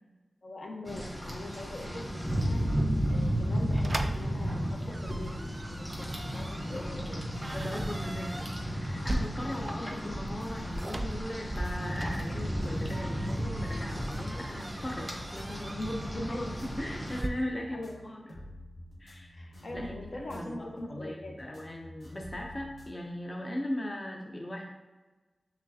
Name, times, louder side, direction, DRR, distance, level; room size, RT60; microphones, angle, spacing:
voice 1, 0.4-2.7 3.1-7.3 9.4-9.7 16.3-16.6 17.7-17.9 19.3-21.5, left 1 dB, 65° left, 0 dB, 0.8 m, -43 dB
Rain, 0.9-17.2, equal, 10° left, 1.2 m, -34 dB
voice 2, 1.8-2.1 6.0-6.1 6.7-7.1 7.5-18.2 19.0-24.7, left 1 dB, 30° left, 1 dB, 0.6 m, -38 dB
sound 1, 3.7-17.3, right 1 dB, 30° right, 0.4 m, -40 dB
sound 2, 10.4-22.9, left 1 dB, 80° left, 1.3 m, -50 dB
5.9 x 3.2 x 2.8 m, 1.2 s
cardioid pair, 55°, 0 cm